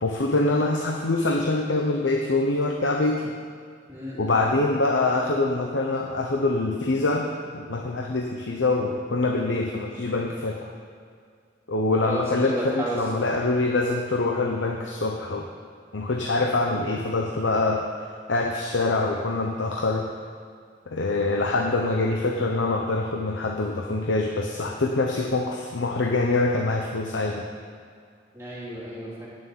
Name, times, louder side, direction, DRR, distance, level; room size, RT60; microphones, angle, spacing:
voice 1, 0.0-3.3 4.2-10.7 11.7-15.5 15.9-17.9 18.3-20.1 20.9-27.5, left 2 dB, 75° left, 2 dB, 0.9 m, -24 dB
voice 2, 3.9-4.4 12.0-13.0 28.3-29.3, right 1 dB, 15° right, -6 dB, 2.7 m, -33 dB
9.1 x 7.2 x 9.0 m, 2.2 s
head